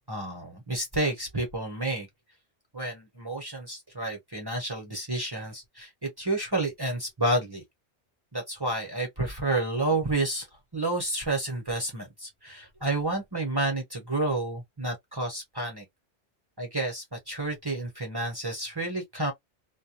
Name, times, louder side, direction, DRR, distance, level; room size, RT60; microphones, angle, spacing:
voice 1, 0.1-2.1 2.7-7.6 8.3-10.5 10.7-15.8 16.6-19.3, right 2 dB, 25° right, 0.9 m, -30 dB
2.3 x 2.1 x 2.7 m
omnidirectional pair, 1.2 m